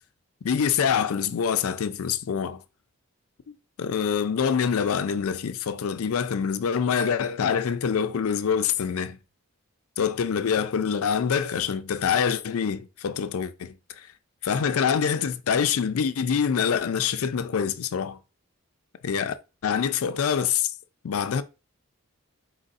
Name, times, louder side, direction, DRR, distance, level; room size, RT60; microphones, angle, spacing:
voice 1, 0.4-2.6 3.5-9.2 10.0-14.1 14.4-18.2 19.0-19.3 19.6-20.7 21.0-21.4, left 7 dB, 80° left, 0.4 m, -25 dB
4.4 x 4.0 x 2.5 m
head